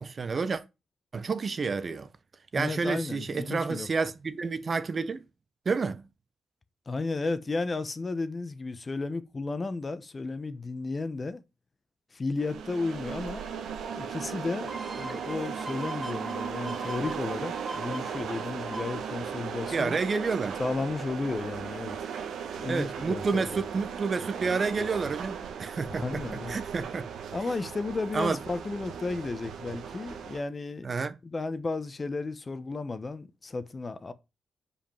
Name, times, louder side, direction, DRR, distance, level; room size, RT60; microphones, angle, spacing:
voice 1, 0.0-0.6 1.1-2.1 2.5-5.2 5.6-6.0 19.7-20.6 22.7-27.1 28.1-28.4 30.8-31.1, right 4 dB, 45° right, 0.8 m, -30 dB
voice 2, 2.6-3.9 6.9-11.4 12.1-13.4 13.9-20.0 20.6-22.0 22.6-23.6 25.9-26.6 27.3-30.9 31.2-34.1, left 3 dB, 35° left, 0.9 m, -33 dB
sound 1, 12.4-30.4, right 7 dB, 80° right, 1.3 m, -37 dB
sound 2, 14.7-20.2 20.6-20.7, right 1 dB, 15° right, 0.8 m, -41 dB
5.2 x 5.1 x 5.7 m
supercardioid pair, 55°, 0 cm